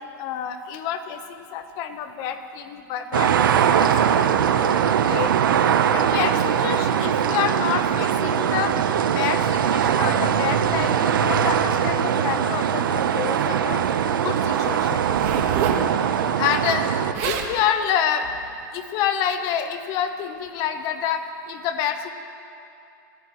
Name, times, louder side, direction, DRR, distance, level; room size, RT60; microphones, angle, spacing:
voice 1, 0.2-8.7 9.1-13.8 14.2-15.0 16.4-16.9 17.2-18.2 18.7-22.1, left 8 dB, 35° left, 8 dB, 1.0 m, -28 dB
sound 1, 3.1-17.1, right 8 dB, 85° right, 0.9 m, -21 dB
Zipper (clothing), 15.0-15.9 16.8-16.9 17.1-17.5 18.2-18.5, right 8 dB, 45° right, 1.5 m, -27 dB
29.0 x 14.5 x 3.1 m, 2.7 s
supercardioid pair, 155°, 11 cm